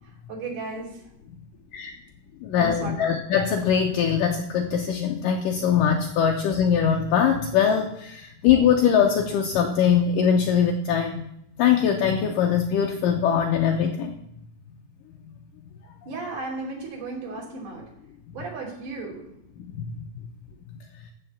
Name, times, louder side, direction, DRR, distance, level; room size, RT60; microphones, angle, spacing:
voice 1, 0.0-1.0 2.6-2.9 16.1-17.9 18.3-19.3, right 3 dB, 50° right, -1 dB, 3.8 m, -35 dB
voice 2, 2.4-11.2 11.6-14.2 19.6-19.9, left 8 dB, 75° left, 3 dB, 2.0 m, -22 dB
14.0 x 5.7 x 7.4 m, 0.79 s
omnidirectional pair, 4.8 m